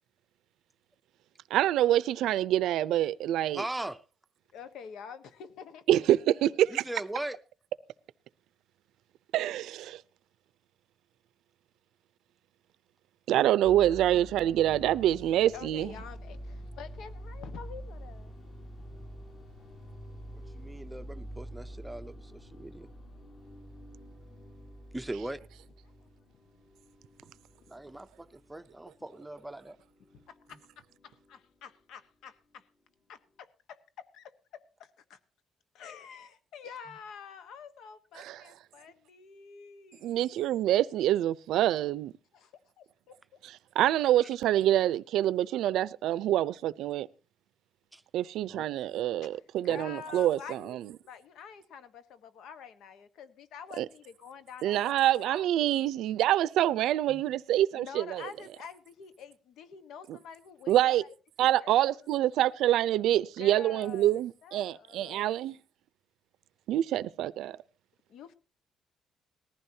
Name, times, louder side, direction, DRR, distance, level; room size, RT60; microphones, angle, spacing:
voice 1, 1.5-3.6 5.9-6.8 9.3-10.0 13.3-15.9 38.2-38.4 40.0-42.1 43.7-47.1 48.1-50.8 53.8-53.9 54.6-58.2 60.7-61.0 61.4-65.6 66.7-67.6, right 13 dB, 85° right, 0.6 m, -26 dB
voice 2, 3.5-4.0 6.7-7.4 20.3-22.9 24.9-25.4 27.7-29.8 47.9-48.0 48.5-48.6 49.6-49.8 57.1-57.2, right 1 dB, 5° right, 0.6 m, -40 dB
voice 3, 4.5-6.1 15.5-18.4 26.0-26.1 30.1-30.7 31.0-32.7 33.1-35.2 35.7-40.3 42.3-43.2 49.2-50.8 51.0-55.9 57.7-61.1 61.4-62.2 63.2-65.3 68.1-68.3, left 7 dB, 70° left, 1.3 m, -48 dB
sound 1, 13.6-32.0, equal, 50° left, 5.2 m, -47 dB
19.5 x 14.5 x 2.8 m
cardioid pair, 180°, 0 cm